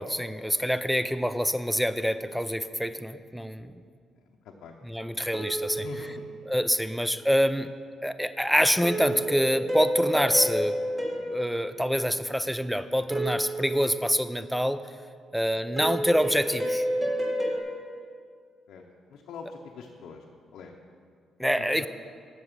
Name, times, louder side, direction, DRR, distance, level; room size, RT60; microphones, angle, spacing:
voice 1, 0.0-3.7 4.8-5.9 6.5-7.7 8.0-10.8 11.3-14.9 15.3-16.9 21.4-21.9, equal, ahead, 11 dB, 0.4 m, -26 dB
voice 2, 4.2-4.8 5.4-6.2 11.1-11.3 18.7-18.8 19.1-20.2 20.5-20.7 21.6-21.9, left 5 dB, 80° left, -1 dB, 0.7 m, -44 dB
sound 1, 5.3-6.8 8.8-12.5 13.1-14.6 15.8-17.6, right 1 dB, 15° right, 1.8 m, -31 dB
7.9 x 6.4 x 7.3 m, 2.1 s
cardioid pair, 90°, 0 cm